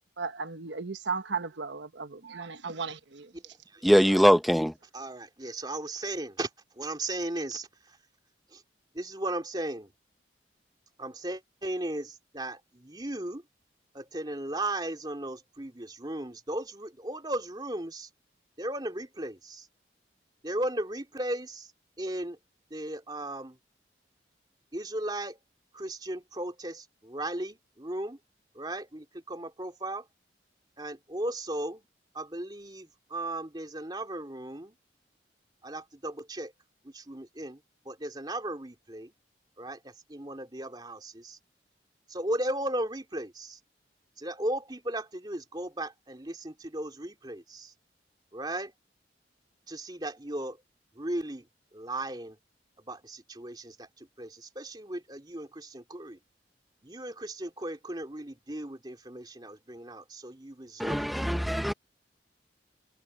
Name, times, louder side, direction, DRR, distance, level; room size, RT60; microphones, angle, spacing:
voice 1, 0.2-3.3 4.1-4.2, right 5 dB, 80° right, 1.1 m, -35 dB
voice 2, 3.8-4.7 60.8-61.7, equal, ahead, 1.0 m, -22 dB
voice 3, 4.9-6.5 6.8-7.7 8.5-8.6 8.9-9.9 11.0-13.4 13.9-18.1 18.6-19.6 20.4-21.7 22.0-22.4 22.7-23.6 24.7-25.4 25.7-28.2 28.5-30.0 30.8-31.8 32.1-34.7 35.6-36.5 36.8-37.6 37.8-39.1 39.6-41.4 42.1-43.6 44.2-47.7 48.3-48.7 49.7-50.6 50.9-51.4 51.7-52.4 52.8-56.2 56.8-61.3, right 1 dB, 25° right, 3.2 m, -36 dB
head